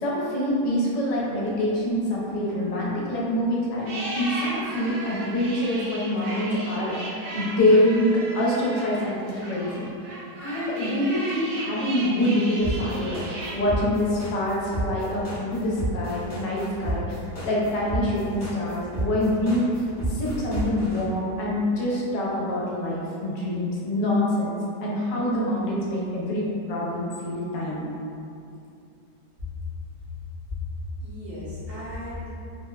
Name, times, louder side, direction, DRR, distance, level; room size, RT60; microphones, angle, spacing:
voice 1, 0.0-9.9 10.4-17.2 17.4-19.7 20.2-24.6 24.8-27.9, left 1 dB, 85° left, -6 dB, 1.3 m, -25 dB
sound 1, 3.8-13.5, right 2 dB, 80° right, 1.2 m, -36 dB
sound 2, 12.6-21.0, right 1 dB, 55° left, 0.8 m, -30 dB
voice 2, 31.0-32.3, left 2 dB, 50° right, -11 dB, 0.7 m, -34 dB
3.4 x 2.0 x 2.2 m, 2.5 s
omnidirectional pair, 1.9 m